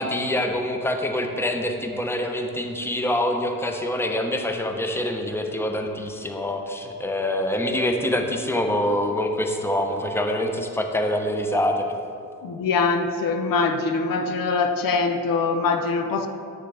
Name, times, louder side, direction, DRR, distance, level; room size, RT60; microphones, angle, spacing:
voice 1, 0.0-11.9, left 1 dB, 5° left, 4 dB, 0.8 m, -25 dB
voice 2, 12.4-16.3, left 4 dB, 75° left, 7 dB, 0.6 m, -23 dB
8.1 x 6.5 x 3.4 m, 2.4 s
cardioid pair, 70°, 34 cm